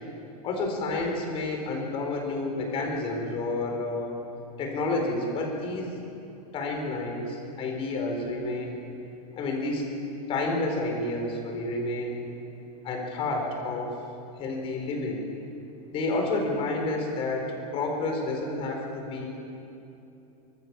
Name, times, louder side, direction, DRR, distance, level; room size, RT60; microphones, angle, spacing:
voice 1, 0.4-4.2 4.6-5.9 6.5-8.8 9.3-9.8 10.3-12.2 12.8-13.9 14.4-15.2 15.9-17.5 17.7-19.3, left 2 dB, 30° left, 1 dB, 4.8 m, -30 dB
25.5 x 19.5 x 7.3 m, 2.8 s
supercardioid pair, 165°, 20 cm